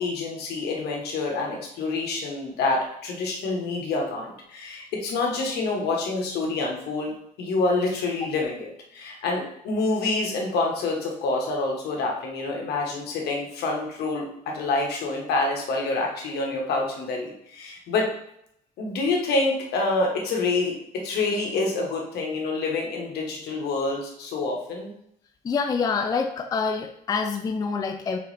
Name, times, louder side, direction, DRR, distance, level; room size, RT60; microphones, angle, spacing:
voice 1, 0.0-7.1 7.4-18.1 18.8-24.9, left 3 dB, 75° left, -1 dB, 1.3 m, -27 dB
voice 2, 25.4-28.2, left 5 dB, 20° left, 5 dB, 0.3 m, -26 dB
4.0 x 3.2 x 4.1 m, 0.72 s
cardioid pair, 110°, 17 cm